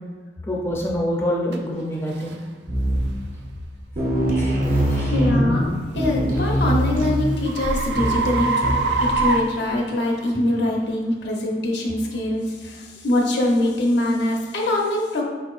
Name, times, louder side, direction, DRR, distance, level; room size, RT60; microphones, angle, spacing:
voice 1, 0.4-2.4 4.4-5.1, equal, 15° left, -2 dB, 0.4 m, -26 dB
sound 1, 1.5-1.6 2.2-2.4 3.0-3.2 5.8-10.3, right 3 dB, 75° right, 0.4 m, -25 dB
sound 2, 2.7-3.3 3.6-3.7 4.0-9.3, equal, 50° right, 0.7 m, -22 dB
voice 2, 5.1-8.7 9.0-15.2, left 1 dB, 75° left, -1 dB, 0.8 m, -23 dB
4.3 x 4.1 x 2.4 m, 1.4 s
head